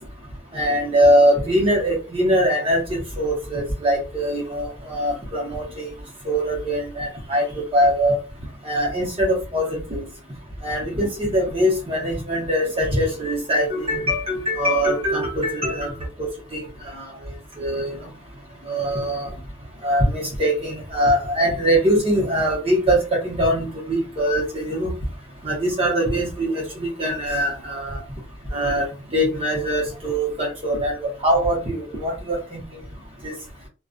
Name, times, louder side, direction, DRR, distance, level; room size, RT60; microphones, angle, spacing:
voice 1, 0.5-5.9 6.3-8.2 8.6-10.0 10.6-15.9 16.2-16.6 16.9-17.0 17.6-18.0 18.7-19.3 19.8-24.9 25.4-28.0 28.5-28.9 29.1-32.6 33.2-33.3, equal, 30° right, 0.8 m, -22 dB
2.3 x 2.2 x 2.5 m
head